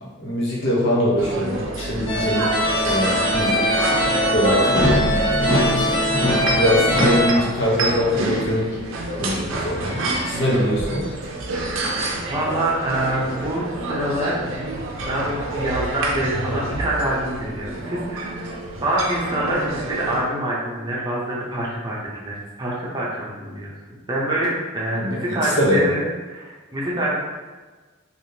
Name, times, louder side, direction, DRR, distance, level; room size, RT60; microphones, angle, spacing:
voice 1, 0.0-2.6 2.8-3.7 4.3-4.9 5.7-6.0 6.5-8.8 9.2-11.1 25.0-25.8, equal, 60° left, -5 dB, 0.9 m, -23 dB
sound 1, 1.2-20.2, right 2 dB, 80° right, 0.5 m, -28 dB
sound 2, 2.1-7.3, equal, 25° left, 0.9 m, -20 dB
voice 2, 12.3-14.4 15.1-18.4 18.8-22.0 22.2-23.7 24.1-27.2, right 1 dB, 20° right, -5 dB, 0.7 m, -25 dB
3.4 x 2.5 x 2.8 m, 1.3 s
head